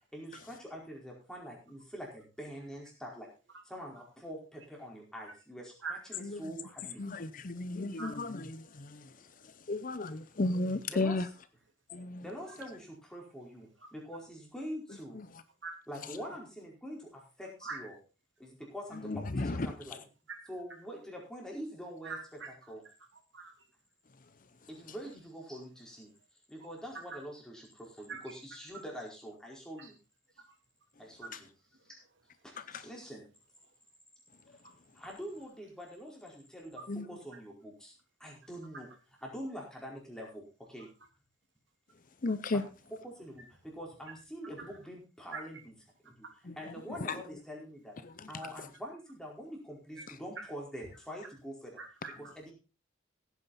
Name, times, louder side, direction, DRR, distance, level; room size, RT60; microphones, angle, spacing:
voice 1, 0.1-3.3 3.6-7.0 10.9-11.3 12.2-15.2 15.9-17.9 18.4-19.1 19.4-20.0 20.5-22.2 22.7-22.8 24.7-26.1 26.5-29.9 31.0-31.5 31.9-32.0 32.7-33.2 34.9-36.8 37.1-37.9 38.2-38.9 39.2-40.4 40.7-40.9 42.5-42.6 43.0-45.6 46.0-46.2 46.6-48.0 48.3-51.7 52.2-52.5, equal, 5° left, 4.6 m, -45 dB
voice 2, 7.0-8.4 8.8-9.0 9.7-11.3 11.9-12.2 19.1-19.6 36.9-37.0 42.2-42.6, left 2 dB, 40° left, 0.7 m, -33 dB
voice 3, 22.0-22.5 23.3-23.6 27.1-27.2 28.1-28.3 28.7-28.8 29.8-29.9 30.4-30.5 31.2-31.3 31.7-31.8 34.6-34.7 36.8-36.9 44.6-44.8 45.3-45.4 48.4-48.5 49.9-50.1 50.4-50.5 51.8-52.3, right 4 dB, 65° right, 3.1 m, -43 dB
16.5 x 9.3 x 4.2 m
head